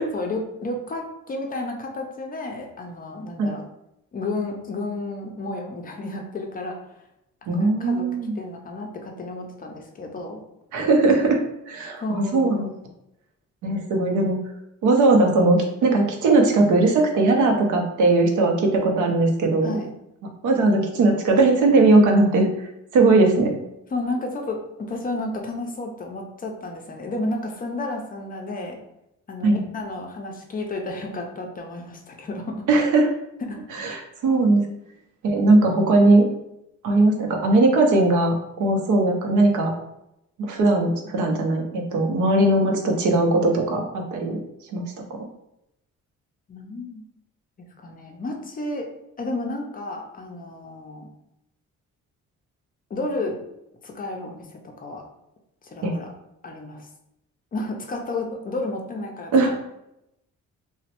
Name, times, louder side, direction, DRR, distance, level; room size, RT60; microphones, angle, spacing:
voice 1, 0.1-3.6 4.1-6.8 7.5-8.1 8.3-10.4 12.0-12.6 19.6-19.9 23.9-28.8 29.3-32.7 33.4-33.7 46.5-47.1 47.8-48.9 49.2-51.1 52.9-53.4 53.8-55.0 55.6-56.1 56.4-56.9 57.5-59.6, left 2 dB, 30° left, 2 dB, 0.4 m, -32 dB
voice 2, 7.5-8.4 10.7-12.7 13.6-14.4 14.8-19.7 20.4-22.7 22.9-23.5 29.4-29.6 32.7-33.1 33.8-34.6 35.2-36.3 36.8-39.7 40.4-44.4 44.7-45.2 55.8-55.9 59.3-59.5, right 2 dB, 80° right, 2 dB, 0.6 m, -19 dB
3.0 x 2.1 x 2.8 m, 0.85 s
cardioid pair, 130°, 29 cm